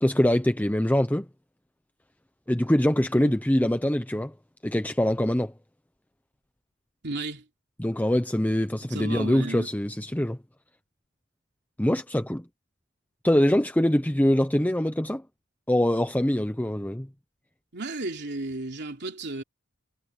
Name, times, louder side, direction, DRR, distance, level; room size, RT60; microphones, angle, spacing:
voice 1, 0.0-1.3 2.5-4.3 4.6-5.5 7.8-10.4 11.8-12.4 13.2-15.2 15.7-17.1, left 1 dB, 10° left, 0.8 m, -23 dB
voice 2, 7.0-7.4 8.9-9.7 17.7-19.4, right 2 dB, 60° right, 3.2 m, -33 dB
head